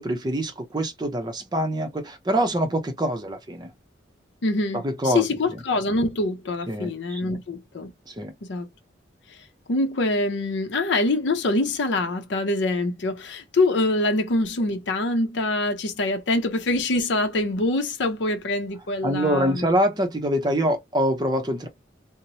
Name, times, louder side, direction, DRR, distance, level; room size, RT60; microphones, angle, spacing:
voice 1, 0.0-3.7 4.8-5.3 6.7-7.4 8.1-8.3 19.0-21.7, equal, 25° right, 0.5 m, -25 dB
voice 2, 4.4-7.9 8.4-8.7 9.3-9.4 9.7-19.7, left 2 dB, 80° left, 0.6 m, -25 dB
2.9 x 2.0 x 2.6 m
head